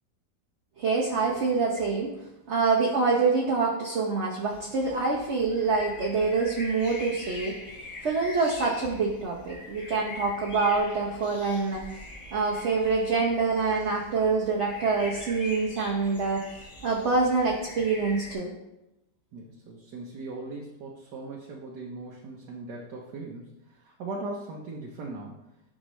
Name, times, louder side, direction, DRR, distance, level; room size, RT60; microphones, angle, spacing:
voice 1, 0.8-2.1 2.5-7.6 8.0-11.8 12.3-16.4 16.8-18.5, right 4 dB, 50° right, -2 dB, 1.0 m, -26 dB
sound 1, 4.5-18.3, left 2 dB, 50° left, 2.3 m, -43 dB
voice 2, 19.3-25.4, right 2 dB, 75° right, -2 dB, 1.5 m, -39 dB
10.0 x 5.2 x 3.1 m, 0.91 s
omnidirectional pair, 1.9 m